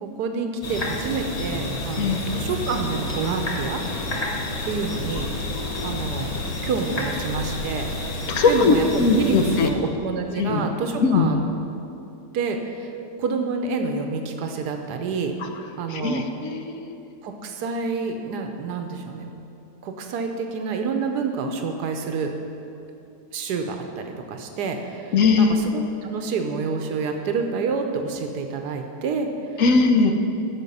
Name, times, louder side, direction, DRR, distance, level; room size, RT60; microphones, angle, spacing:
voice 1, 0.0-3.8 4.6-5.3 5.8-7.9 8.5-11.4 12.3-12.9 13.2-15.3 15.8-16.2 17.2-19.3 19.8-22.3 23.3-25.5 25.7-29.3, right 4 dB, 85° right, 5 dB, 1.4 m, -28 dB
sound 1, 0.6-9.7, left 2 dB, 30° left, 0.8 m, -30 dB
voice 2, 5.6-6.0 8.3-9.7 10.3-10.6 11.0-11.3 15.4-15.5 15.9-16.9 25.1-25.5 29.6-30.1, left 4 dB, 60° left, 6 dB, 1.0 m, -20 dB
12.5 x 6.5 x 5.4 m, 2.8 s
omnidirectional pair, 1.7 m